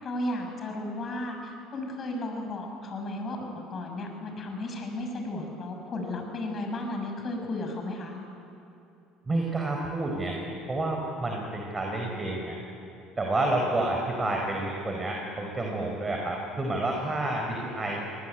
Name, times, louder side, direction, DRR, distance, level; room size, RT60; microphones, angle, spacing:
voice 1, 0.0-8.1, left 1 dB, 40° left, 3 dB, 6.4 m, -34 dB
voice 2, 9.3-10.4 10.7-12.6 13.2-18.1, right 2 dB, 25° right, 0 dB, 4.9 m, -29 dB
25.0 x 19.0 x 9.3 m, 2.8 s
hypercardioid pair, 65°, 0 cm